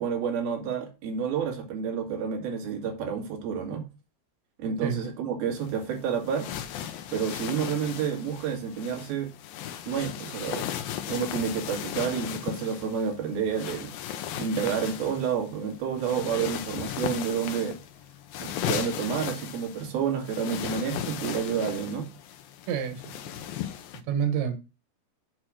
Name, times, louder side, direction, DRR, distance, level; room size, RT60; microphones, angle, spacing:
voice 1, 0.0-3.8 4.6-6.5 7.1-9.3 9.9-10.7 11.1-13.9 14.4-17.8 18.4-22.1, right 7 dB, 60° right, 3.6 m, -29 dB
sound 1, 5.6-24.0, left 10 dB, 80° left, 2.1 m, -36 dB
voice 2, 22.7-23.0 23.3-23.5 24.1-24.6, right 8 dB, 90° right, 3.5 m, -28 dB
7.6 x 4.4 x 6.2 m
omnidirectional pair, 5.0 m